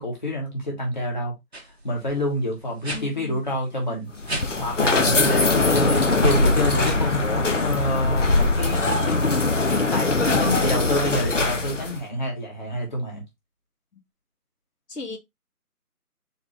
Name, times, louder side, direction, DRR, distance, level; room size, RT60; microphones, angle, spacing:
voice 1, 0.0-1.3 1.8-4.1 4.6-9.2 9.9-13.2, left 1 dB, 30° left, 1.4 m, -27 dB
sound 1, 1.5-1.6 1.9-2.2 2.8-3.0 4.3-4.5 5.7-7.7, right 1 dB, 45° right, 0.7 m, -27 dB
voice 2, 2.9-3.4 14.9-15.2, left 3 dB, 90° left, 1.7 m, -36 dB
sound 2, 4.1-12.0, left 3 dB, 55° left, 0.7 m, -22 dB
4.1 x 3.2 x 3.1 m
figure-of-eight pair, 170°, 46 cm